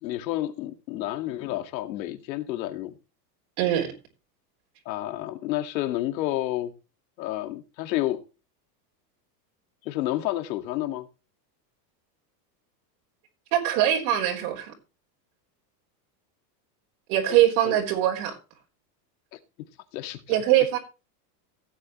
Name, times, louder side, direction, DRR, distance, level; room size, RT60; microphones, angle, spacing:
voice 1, 0.0-3.0 4.9-6.7 7.2-8.2 9.8-11.1 17.6-17.7 19.3-19.4 19.9-20.4, left 14 dB, 85° left, 2.2 m, -30 dB
voice 2, 3.6-3.9 13.5-14.7 17.1-18.4 20.3-20.8, right 12 dB, 60° right, 4.0 m, -22 dB
16.5 x 8.7 x 3.1 m
supercardioid pair, 170°, 50 cm